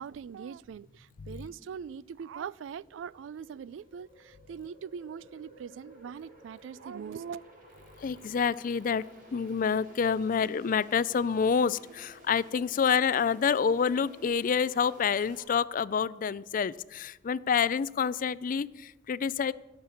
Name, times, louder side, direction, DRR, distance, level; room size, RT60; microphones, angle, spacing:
voice 1, 0.0-7.4, right 7 dB, 80° right, 0.3 m, -41 dB
sound 1, 0.6-15.4, right 1 dB, 50° right, 4.5 m, -55 dB
voice 2, 8.0-9.0 9.3-19.5, left 6 dB, 45° left, 0.4 m, -28 dB
16.0 x 6.7 x 7.1 m
head